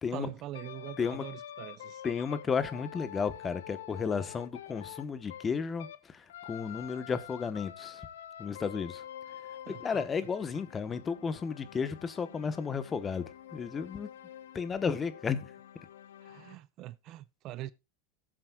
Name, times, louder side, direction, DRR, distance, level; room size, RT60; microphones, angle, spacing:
voice 1, 0.1-2.0 9.7-10.0 16.2-17.7, right 14 dB, 45° right, 0.6 m, -43 dB
sound 1, 0.5-6.0 6.3-16.6, left 11 dB, 90° left, 1.0 m, -47 dB
voice 2, 2.0-8.1 8.4-9.0 9.7-14.1 14.5-15.5, left 6 dB, 20° left, 1.1 m, -33 dB
18.0 x 7.5 x 2.3 m
supercardioid pair, 125°, 0 cm